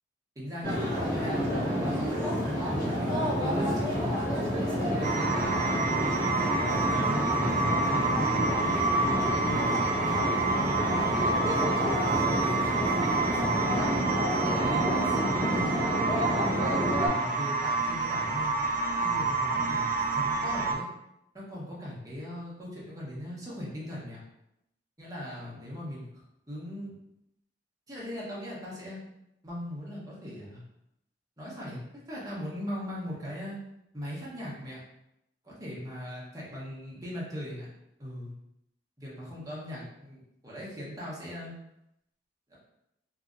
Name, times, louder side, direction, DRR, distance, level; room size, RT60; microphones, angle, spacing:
voice 1, 0.4-0.8 1.1-4.3 4.9-8.4 9.0-13.0 13.5-16.4 17.0-18.5 19.0-20.9 21.3-24.2 25.0-27.0 27.9-29.0 29.4-30.6 31.4-31.8 32.1-33.6 33.9-34.8 35.4-37.7 38.0-38.3 39.0-41.5 42.5-42.6, equal, 20° right, -6 dB, 0.9 m, -39 dB
sound 1, 0.6-17.1, equal, 20° left, 1.0 m, -29 dB
sound 2, 5.0-20.7, right 3 dB, 45° right, 0.3 m, -28 dB
2.8 x 2.6 x 2.4 m, 0.82 s
head